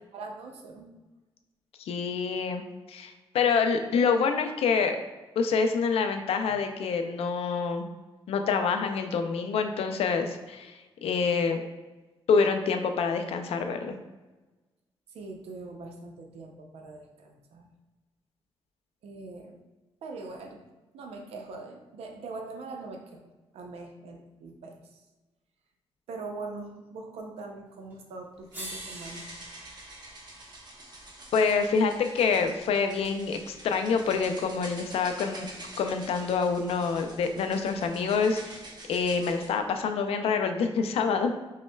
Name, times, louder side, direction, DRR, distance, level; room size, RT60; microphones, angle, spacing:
voice 1, 0.1-0.9 6.4-6.5 15.1-17.7 19.0-19.6 20.0-20.6 20.9-23.2 23.5-25.0 26.1-29.3, right 3 dB, 85° right, 2 dB, 0.6 m, -42 dB
voice 2, 1.8-2.6 2.9-5.0 5.4-7.9 8.3-11.6 12.3-14.0 31.3-35.5 35.8-38.6 38.9-41.3, left 5 dB, 80° left, 6 dB, 0.4 m, -26 dB
sound 1, 27.9-28.0 28.5-32.7 34.1-34.2, right 1 dB, 20° right, 1.2 m, -46 dB
sound 2, 28.5-39.5, right 1 dB, 45° right, 0.9 m, -47 dB
5.3 x 2.1 x 2.2 m, 1.2 s
cardioid pair, 70°, 10 cm